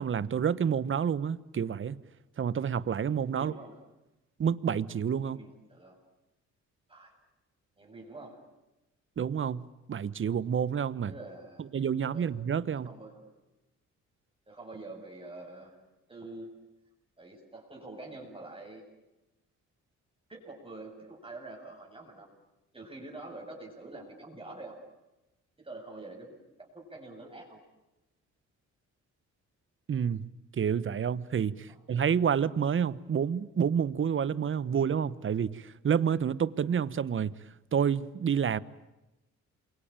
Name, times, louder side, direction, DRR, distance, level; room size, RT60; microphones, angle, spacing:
voice 1, 0.0-2.0 2.4-3.5 4.4-5.4 9.2-11.1 11.7-12.9 29.9-30.3 30.5-37.4 37.7-38.6, right 7 dB, 40° right, 1.1 m, -29 dB
voice 2, 3.3-3.8 5.2-6.0 6.9-7.1 7.8-8.4 11.0-11.6 12.1-12.3 12.7-13.3 14.5-15.7 16.1-16.5 17.2-18.8 20.3-22.3 22.7-24.7 25.6-27.6 31.7-31.8, right 2 dB, 20° right, 7.9 m, -46 dB
28.5 x 23.5 x 9.0 m
cardioid pair, 90°, 30 cm